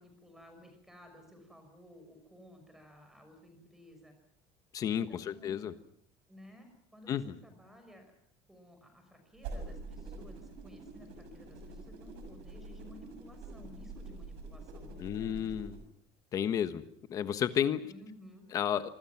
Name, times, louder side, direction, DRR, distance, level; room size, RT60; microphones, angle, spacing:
voice 1, 0.0-4.2 4.8-5.7 6.3-8.1 8.5-15.6 17.9-18.5, equal, 5° right, 6 dB, 5.8 m, -55 dB
voice 2, 4.7-5.7 7.1-7.3 15.0-15.7 16.3-16.8 17.1-17.9 18.5-18.9, left 9 dB, 30° left, 11 dB, 1.3 m, -32 dB
sound 1, 9.3-15.8, right 3 dB, 60° right, 6.7 m, -46 dB
26.5 x 25.0 x 6.0 m, 0.65 s
cardioid pair, 180°, 11 cm